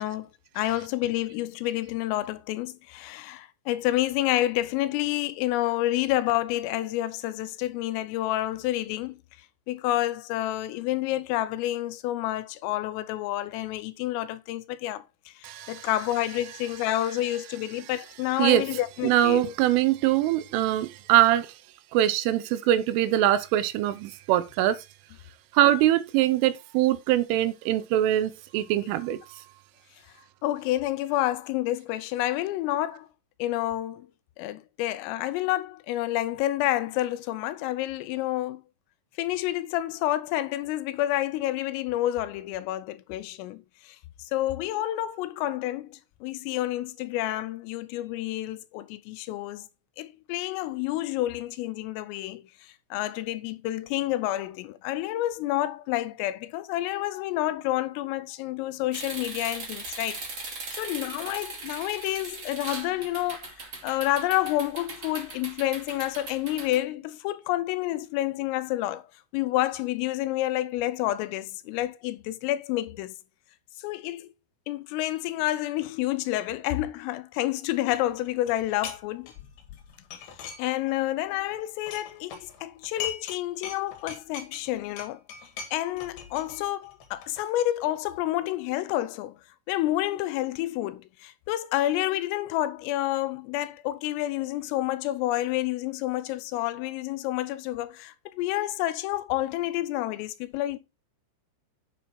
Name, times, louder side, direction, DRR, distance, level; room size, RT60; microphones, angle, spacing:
voice 1, 0.0-9.2 9.7-15.0 15.4-19.5 30.4-33.1 33.4-34.1 34.4-38.6 39.2-44.0 44.3-49.7 50.0-63.4 63.8-69.1 69.3-73.1 73.8-74.3 74.7-79.3 80.6-85.2 85.7-89.4 89.7-100.8, left 15 dB, 85° left, 3.4 m, -29 dB
voice 2, 15.4-15.9 18.4-18.6 19.0-21.5 21.9-24.8 25.5-29.2, right 13 dB, 80° right, 3.2 m, -23 dB
sound 1, 58.9-66.8, right 3 dB, 35° right, 2.2 m, -39 dB
sound 2, 77.9-79.0 79.3-81.0 81.3-83.4 83.6-87.4, left 8 dB, 65° left, 3.8 m, -40 dB
9.1 x 6.9 x 4.3 m
omnidirectional pair, 5.8 m